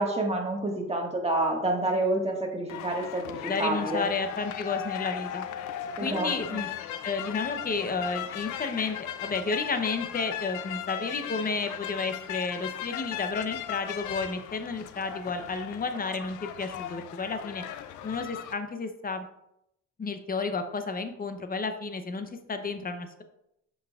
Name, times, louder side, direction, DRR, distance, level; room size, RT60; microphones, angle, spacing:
voice 1, 0.0-4.1 6.0-6.6, right 2 dB, 20° right, 0 dB, 1.7 m, -28 dB
sound 1, 2.7-18.5, left 11 dB, 85° left, 0.5 m, -37 dB
voice 2, 3.5-5.4 6.0-6.7 7.0-17.6 18.0-19.3 20.0-23.2, left 4 dB, 30° left, 8 dB, 0.8 m, -32 dB
7.4 x 5.5 x 2.4 m, 0.80 s
cardioid pair, 90°, 30 cm